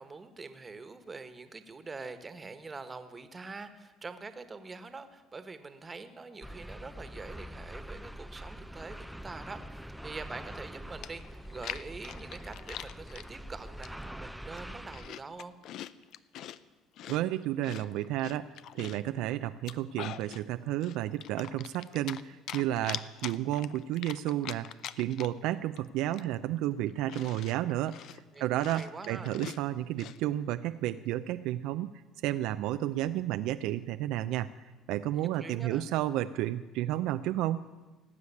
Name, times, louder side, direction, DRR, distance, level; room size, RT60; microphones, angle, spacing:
voice 1, 0.0-15.5 28.3-29.3 35.1-35.9, right 4 dB, 25° right, 10 dB, 1.4 m, -45 dB
sound 1, 6.4-15.1, equal, 5° right, 0.5 m, -44 dB
Chewing mastication, 10.6-10.7 11.0-13.3 13.8-14.2 14.5-16.6 17.0-19.1 19.5-20.4 20.8-22.2 22.5-25.5 25.8-25.9 26.1-30.2, left 11 dB, 65° left, 0.5 m, -43 dB
voice 2, 17.1-18.5 18.7-24.7 25.0-28.0 28.4-31.9 32.2-34.5 34.9-37.7, right 13 dB, 75° right, 10 dB, 0.5 m, -31 dB
18.0 x 8.2 x 8.4 m, 1.2 s
supercardioid pair, 90°, 0 cm